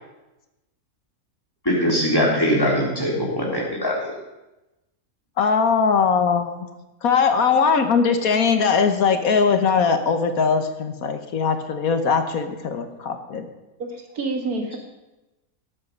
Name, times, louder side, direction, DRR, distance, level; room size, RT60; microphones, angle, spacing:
voice 1, 1.7-4.1, equal, 15° left, -3 dB, 3.4 m, -21 dB
voice 2, 5.4-6.7 7.0-13.5, left 5 dB, 70° left, 7 dB, 1.5 m, -20 dB
voice 3, 13.8-14.8, right 3 dB, 80° right, 2 dB, 2.5 m, -28 dB
17.5 x 8.3 x 5.3 m, 1.0 s
omnidirectional pair, 1.6 m